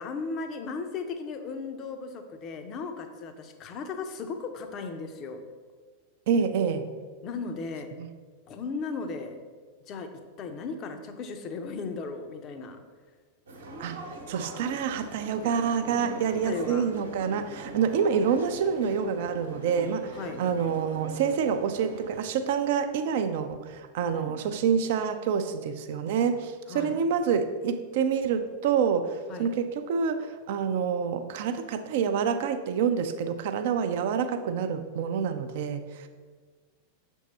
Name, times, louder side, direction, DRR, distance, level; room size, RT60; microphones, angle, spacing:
voice 1, 0.0-5.4 7.2-7.9 8.5-9.4 9.9-10.1 10.4-12.8 16.4-16.8 20.1-20.4 24.0-24.4 26.7-27.0 29.3-29.5, left 4 dB, 35° left, 7 dB, 0.6 m, -36 dB
voice 2, 6.3-6.9 8.0-8.1 13.8-36.1, right 7 dB, 50° right, 9 dB, 0.4 m, -27 dB
sound 1, 13.5-22.2, right 1 dB, 70° right, 1.0 m, -42 dB
6.4 x 3.6 x 4.2 m, 1.5 s
figure-of-eight pair, 90°, 0 cm